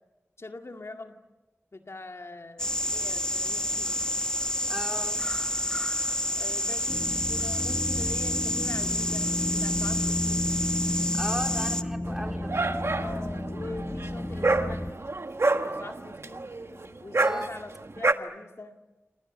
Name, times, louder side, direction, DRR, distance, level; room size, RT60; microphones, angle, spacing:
voice 1, 0.4-1.2 1.7-3.9 6.4-10.5 13.0-14.9 15.4-18.8, left 2 dB, 65° left, 4 dB, 2.1 m, -43 dB
sound 1, 2.6-11.8, left 1 dB, 15° left, 1.2 m, -29 dB
voice 2, 4.7-5.2 11.1-12.9 15.8-15.9 17.2-17.5, equal, 10° right, 3 dB, 4.0 m, -36 dB
sound 2, 6.9-14.9, left 1 dB, 40° left, 5.6 m, -32 dB
Dog, 12.1-18.1, right 3 dB, 60° right, 1.5 m, -28 dB
28.0 x 27.5 x 7.4 m, 1.1 s
wide cardioid pair, 55°, 5 cm